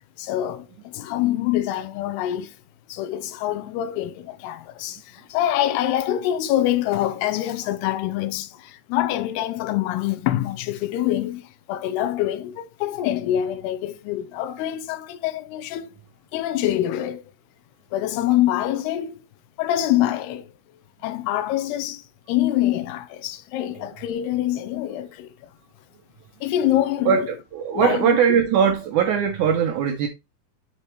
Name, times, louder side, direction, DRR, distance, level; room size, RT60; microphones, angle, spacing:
voice 1, 0.2-2.6 2.9-15.9 16.3-17.2 17.9-19.2 19.6-20.5 21.0-25.5 26.4-27.3 27.7-28.2, left 13 dB, 90° left, 2.8 m, -25 dB
voice 2, 27.1-30.1, right 7 dB, 85° right, 1.7 m, -20 dB
7.0 x 6.4 x 3.1 m
omnidirectional pair, 4.5 m